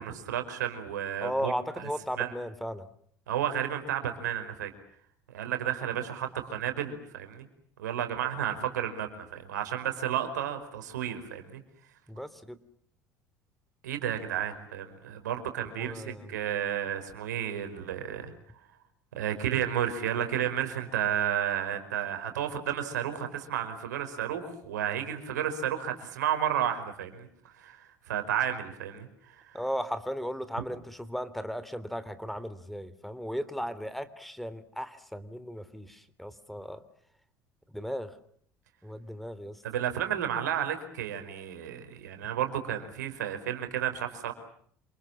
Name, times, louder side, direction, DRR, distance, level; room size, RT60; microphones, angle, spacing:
voice 1, 0.0-1.5 2.2-2.3 3.3-4.7 5.3-7.5 7.8-11.6 13.8-18.3 19.2-27.3 27.6-29.1 29.4-29.6 39.6-44.3, right 10 dB, 80° right, 7 dB, 5.1 m, -32 dB
voice 2, 1.2-2.9 12.1-12.6 15.8-16.3 29.5-36.8 37.7-38.2 38.8-39.6, equal, ahead, 14 dB, 3.2 m, -36 dB
28.5 x 27.5 x 7.5 m, 0.64 s
hypercardioid pair, 65°, 9 cm